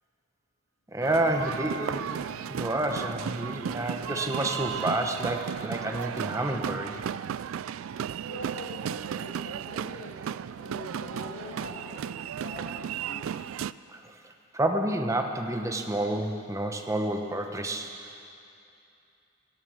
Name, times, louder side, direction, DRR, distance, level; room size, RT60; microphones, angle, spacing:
voice 1, 0.9-7.0 13.9-14.1 14.5-17.9, right 1 dB, 15° right, 4 dB, 1.0 m, -29 dB
sound 1, 1.0-13.7, right 8 dB, 90° right, 0.3 m, -34 dB
voice 2, 8.3-10.2 10.6-13.3, left 2 dB, 90° left, -4 dB, 2.1 m, -43 dB
17.0 x 12.5 x 6.5 m, 2.6 s
head